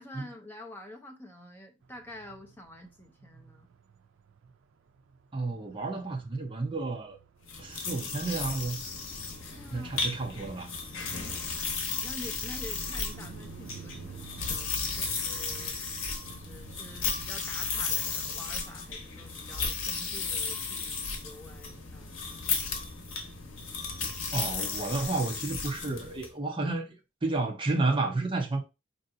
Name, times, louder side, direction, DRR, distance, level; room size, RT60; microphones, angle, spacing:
voice 1, 0.0-3.7 9.5-10.1 10.9-15.8 16.3-22.2, left 1 dB, 10° left, 0.7 m, -48 dB
sound 1, 1.8-18.5, right 7 dB, 75° right, 0.4 m, -52 dB
voice 2, 5.3-7.2 7.6-8.8 9.7-10.7 24.3-26.9 27.2-28.6, right 3 dB, 25° right, 0.6 m, -31 dB
sound 2, 7.4-26.3, left 4 dB, 80° left, 0.9 m, -34 dB
4.5 x 2.7 x 2.6 m
head